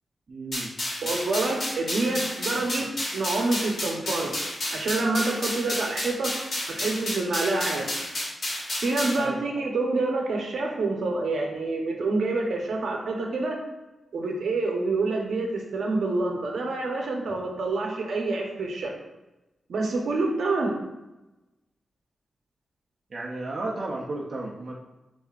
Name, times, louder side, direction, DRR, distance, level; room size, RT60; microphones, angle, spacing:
voice 1, 0.3-0.7 2.7-2.9 9.2-9.4 23.1-24.7, right 2 dB, 45° right, -3 dB, 0.5 m, -33 dB
sound 1, 0.5-9.2, left 1 dB, 60° left, 1.4 m, -31 dB
voice 2, 1.0-4.4 4.7-6.4 6.7-7.9 8.8-13.6 14.1-18.9 19.7-20.7, right 3 dB, 75° right, 1 dB, 0.8 m, -27 dB
6.6 x 2.6 x 2.4 m, 1.0 s
wide cardioid pair, 165°, 0 cm